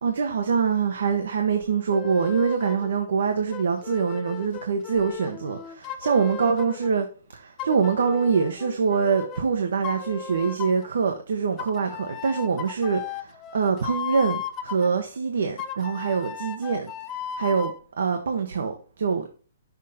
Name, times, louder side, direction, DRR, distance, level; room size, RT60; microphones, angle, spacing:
voice 1, 0.0-7.1 7.3-17.7 18.0-19.3, right 5 dB, 75° right, 1.1 m, -24 dB
sound 1, 1.9-2.9 3.5-6.9 7.6-9.5 9.8-10.9 11.6-14.9 15.6-17.8, left 8 dB, 15° left, 0.5 m, -36 dB
6.5 x 5.2 x 4.2 m
hypercardioid pair, 175°, 0 cm